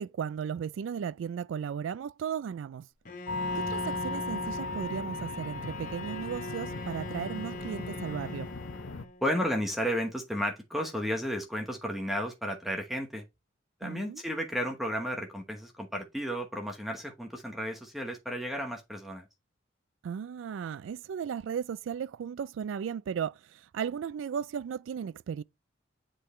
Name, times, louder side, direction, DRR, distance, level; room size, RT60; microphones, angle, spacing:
voice 1, 0.0-2.9 3.5-8.5 13.8-14.2 20.0-25.4, right 7 dB, 80° right, 0.3 m, -35 dB
Bowed string instrument, 3.1-9.3, left 2 dB, 45° left, 0.8 m, -40 dB
sound 1, 3.3-9.0, left 3 dB, 85° left, 0.7 m, -37 dB
voice 2, 9.2-13.2 13.8-19.3, equal, ahead, 1.0 m, -33 dB
7.7 x 4.5 x 3.2 m
head